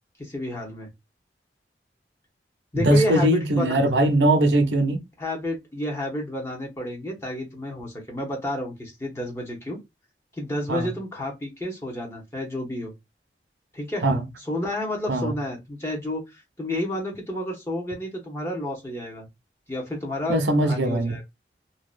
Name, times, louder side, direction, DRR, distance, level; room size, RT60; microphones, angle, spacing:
voice 1, 0.2-0.9 2.7-3.7 5.2-9.8 10.4-12.9 13.7-14.0 14.5-19.3 19.7-21.2, left 1 dB, 15° left, 0.8 m, -30 dB
voice 2, 2.8-5.0 10.7-10.9 14.0-14.2 15.1-15.3 20.3-21.2, right 1 dB, 90° right, 0.6 m, -20 dB
2.7 x 2.2 x 2.4 m
head